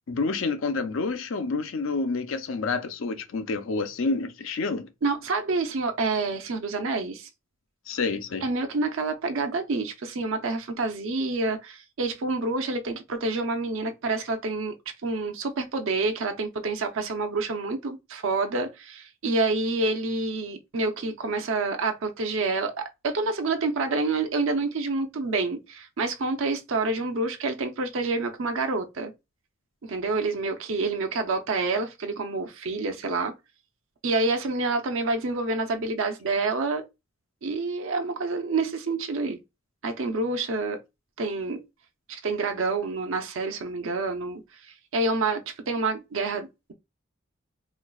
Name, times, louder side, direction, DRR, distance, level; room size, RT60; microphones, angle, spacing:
voice 1, 0.1-4.9 7.9-8.4, left 3 dB, 70° left, 0.5 m, -28 dB
voice 2, 5.0-7.3 8.4-14.7 15.0-29.1 29.8-33.3 34.0-36.8 37.4-39.4 39.8-40.8 41.2-41.6 42.1-46.7, right 3 dB, 70° right, 0.6 m, -28 dB
4.4 x 2.3 x 2.3 m
head